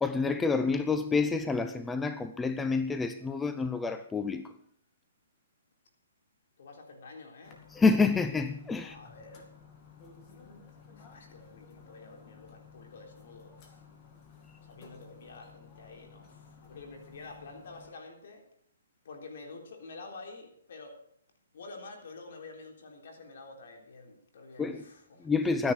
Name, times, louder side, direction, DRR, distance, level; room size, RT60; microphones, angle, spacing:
voice 1, 0.0-4.5 7.7-9.0 24.6-24.8 25.2-25.7, left 4 dB, 10° left, 0.5 m, -28 dB
voice 2, 6.6-7.6 8.8-9.5 10.3-10.6 10.9-13.8 14.6-18.4 19.0-21.0 21.5-25.7, left 3 dB, 60° left, 3.6 m, -49 dB
sound 1, 7.4-17.9, left 6 dB, 25° left, 2.3 m, -55 dB
13.0 x 9.9 x 6.3 m
hypercardioid pair, 150°, 0 cm